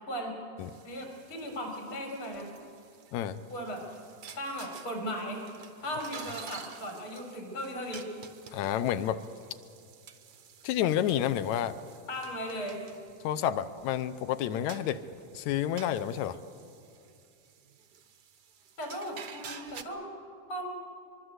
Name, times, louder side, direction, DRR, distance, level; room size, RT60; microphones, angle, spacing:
sound 1, 0.6-19.8, right 6 dB, 90° right, 0.9 m, -50 dB
voice 1, 0.8-2.5 3.5-3.8 4.3-5.5 5.8-8.1 12.1-12.8 18.8-20.1 20.5-20.7, equal, 40° left, 2 dB, 5.1 m, -37 dB
voice 2, 8.5-9.2 10.6-11.8 13.2-15.0 15.3-16.4, left 11 dB, 75° left, 13 dB, 2.0 m, -29 dB
24.0 x 23.0 x 8.0 m, 2.5 s
omnidirectional pair, 3.5 m